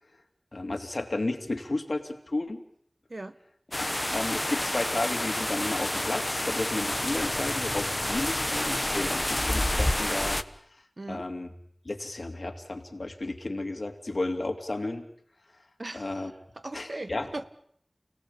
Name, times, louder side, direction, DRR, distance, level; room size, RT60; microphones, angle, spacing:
voice 1, 0.5-2.6 3.7-10.4 10.7-10.8 11.1-11.5 11.8-15.1 15.9-16.3 16.7-17.3, left 2 dB, 70° left, 7 dB, 2.9 m, -33 dB
sound 1, 3.7-10.4, left 1 dB, 30° left, 1.2 m, -29 dB
voice 2, 11.0-11.3 15.8-17.4, right 2 dB, 65° right, 12 dB, 1.5 m, -39 dB
30.0 x 18.0 x 8.7 m, 0.67 s
wide cardioid pair, 45°, 0 cm